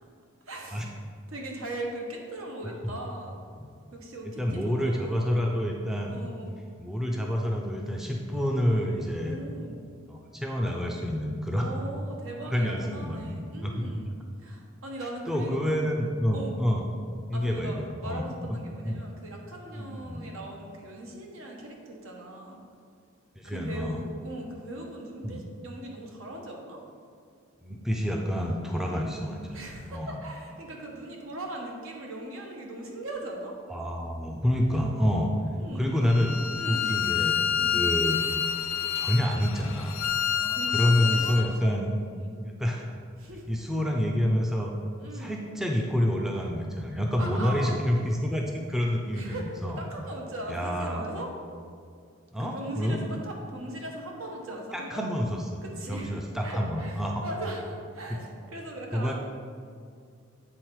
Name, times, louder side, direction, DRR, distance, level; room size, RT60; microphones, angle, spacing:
voice 1, 0.5-1.0 1.3-3.4 3.9-5.3 6.1-6.6 9.2-9.8 11.5-15.8 16.3-16.6 17.3-22.6 23.4-26.8 28.8-29.1 29.5-33.5 35.6-36.0 36.6-37.0 37.6-37.8 40.4-41.8 42.2-42.4 43.2-43.5 45.0-45.4 47.2-47.8 49.1-51.3 52.4-55.0 55.6-56.1 56.4-59.1, right 1 dB, 75° right, 0 dB, 1.1 m, -39 dB
voice 2, 4.2-6.2 6.8-9.4 10.1-11.7 12.5-13.9 15.3-16.8 17.3-18.2 18.5-19.0 19.8-20.3 23.4-24.0 25.2-25.4 27.6-30.2 33.7-35.3 35.8-36.4 36.7-38.2 38.9-40.0 40.7-41.9 42.6-42.9 43.5-44.7 45.1-49.8 50.5-51.0 52.3-53.0 54.7-55.6 55.9-57.2 58.1-58.2 58.9-59.1, equal, ahead, 0 dB, 0.4 m, -28 dB
Bowed string instrument, 36.1-41.5, left 8 dB, 80° left, 0.4 m, -28 dB
8.1 x 3.9 x 4.6 m, 2.2 s
head